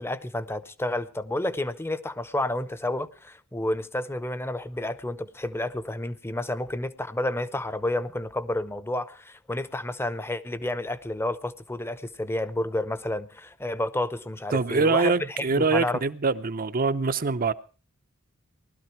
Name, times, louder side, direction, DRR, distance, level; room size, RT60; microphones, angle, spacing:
voice 1, 0.0-16.0, left 1 dB, 10° left, 0.8 m, -30 dB
voice 2, 14.5-17.5, right 4 dB, 40° right, 0.7 m, -24 dB
19.5 x 12.5 x 4.5 m
head